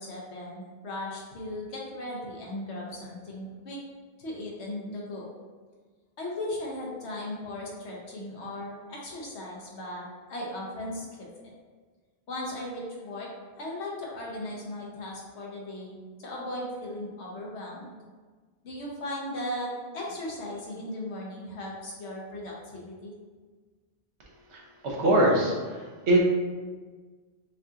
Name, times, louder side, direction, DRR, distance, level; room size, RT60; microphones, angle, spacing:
voice 1, 0.0-3.8 4.2-5.3 6.2-11.3 12.3-13.3 13.6-17.9 18.6-23.1, left 1 dB, 85° left, -3 dB, 1.2 m, -37 dB
voice 2, 24.8-25.5 26.1-26.2, right 1 dB, 80° right, -2 dB, 1.1 m, -21 dB
5.8 x 2.4 x 2.8 m, 1.4 s
omnidirectional pair, 1.1 m